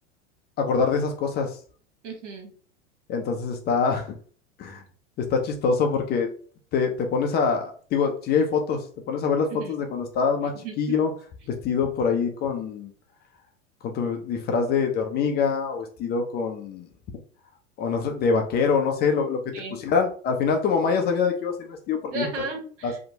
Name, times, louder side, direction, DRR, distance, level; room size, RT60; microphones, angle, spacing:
voice 1, 0.6-1.6 3.1-4.1 4.6-4.8 5.3-6.3 6.7-11.1 11.6-12.9 13.8-16.9 17.8-19.4 19.8-22.3 22.8-22.9, left 5 dB, 25° left, 4 dB, 0.4 m, -24 dB
voice 2, 2.0-2.5 9.5-9.7 10.6-10.9 19.5-19.8 22.1-23.0, right 4 dB, 70° right, 2 dB, 1.2 m, -34 dB
2.8 x 2.1 x 2.7 m, 0.44 s
hypercardioid pair, 95°, 38 cm